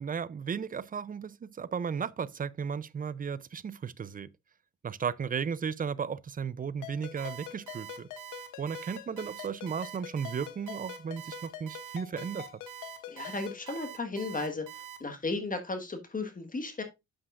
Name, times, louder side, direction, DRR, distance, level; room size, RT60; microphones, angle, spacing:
voice 1, 0.0-4.3 4.8-8.1 8.6-12.5, right 6 dB, 30° right, 0.5 m, -35 dB
Ringtone, 6.8-13.7, left 12 dB, 85° left, 0.9 m, -46 dB
Alarm, 7.2-15.0, right 12 dB, 90° right, 2.1 m, -45 dB
voice 2, 13.1-16.8, left 3 dB, 25° left, 1.4 m, -35 dB
8.6 x 7.3 x 2.4 m
cardioid pair, 90°, 30 cm